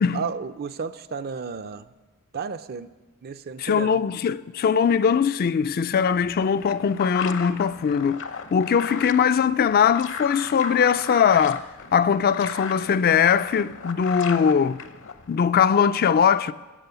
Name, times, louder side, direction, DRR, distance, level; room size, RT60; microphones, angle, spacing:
voice 1, 0.1-1.9 2.3-2.9 3.2-4.0, right 5 dB, 45° right, 0.5 m, -32 dB
voice 2, 3.6-8.2 8.5-14.8 15.3-16.5, left 7 dB, 45° left, 0.3 m, -21 dB
sound 1, 6.1-15.4, left 6 dB, 60° left, 0.8 m, -36 dB
14.5 x 8.3 x 6.8 m
head